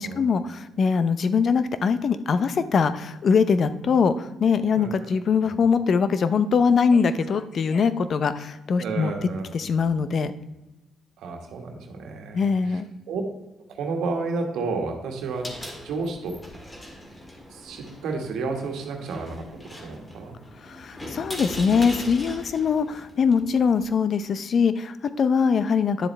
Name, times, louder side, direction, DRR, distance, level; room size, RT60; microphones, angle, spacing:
voice 1, 0.0-9.1 9.5-10.3 12.3-12.9 20.6-26.1, left 5 dB, 55° left, 13 dB, 0.6 m, -22 dB
voice 2, 4.7-5.1 5.4-5.5 8.8-9.5 11.2-12.8 13.1-13.2 13.7-15.5 15.8-16.4 17.5-19.4 19.8-20.4, right 4 dB, 80° right, 3 dB, 1.5 m, -31 dB
sound 1, 15.2-23.9, equal, 20° left, 1.9 m, -40 dB
10.0 x 7.2 x 3.3 m, 1.0 s
cardioid pair, 90°, 0 cm